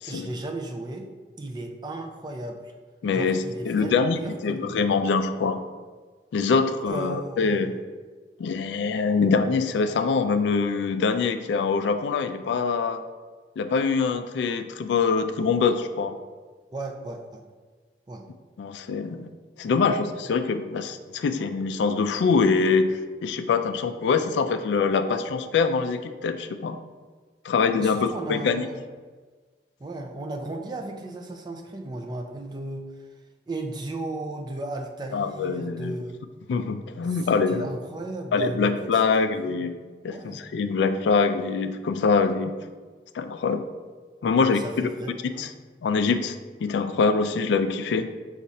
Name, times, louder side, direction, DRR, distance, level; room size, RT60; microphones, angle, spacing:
voice 1, 0.1-1.1 1.4-2.7 3.1-5.0 6.8-7.7 16.7-17.4 18.1-18.2 27.8-28.8 29.8-32.8 33.5-36.2 37.1-39.6 40.1-40.4 44.3-45.5, right 2 dB, 25° right, 2 dB, 0.4 m, -35 dB
voice 2, 3.0-5.6 6.3-7.7 8.4-13.0 13.6-16.2 18.6-19.3 19.6-26.8 27.4-28.7 35.1-36.0 36.5-37.7 38.3-39.7 40.0-42.5 43.1-43.6 44.2-44.6 45.4-45.5 45.8-46.4 46.6-48.1, left 4 dB, 75° left, 9 dB, 0.3 m, -24 dB
5.3 x 2.4 x 4.1 m, 1.4 s
head